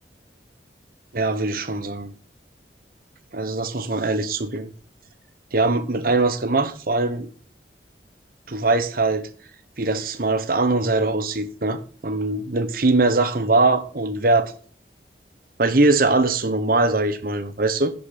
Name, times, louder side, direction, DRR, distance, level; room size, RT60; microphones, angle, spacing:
voice 1, 1.1-2.1 3.3-4.7 5.5-7.3 8.5-9.3 9.8-14.5 15.6-17.9, right 2 dB, 55° right, 1.1 m, -21 dB
11.0 x 6.8 x 6.0 m
head